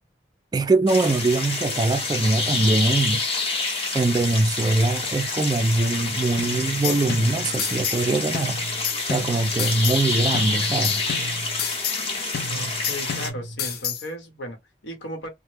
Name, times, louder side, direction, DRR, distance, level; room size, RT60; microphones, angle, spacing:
voice 1, 0.5-3.2 3.9-8.6 9.0-11.0, right 2 dB, 20° right, 0.3 m, -22 dB
sound 1, 0.9-13.3, left 3 dB, 35° left, 0.8 m, -28 dB
sound 2, 6.4-8.1 8.3-10.1 10.3-12.1 12.3-14.1, left 6 dB, 55° left, 0.5 m, -31 dB
voice 2, 12.5-15.3, equal, 75° left, 1.0 m, -36 dB
3.0 x 2.1 x 3.2 m
head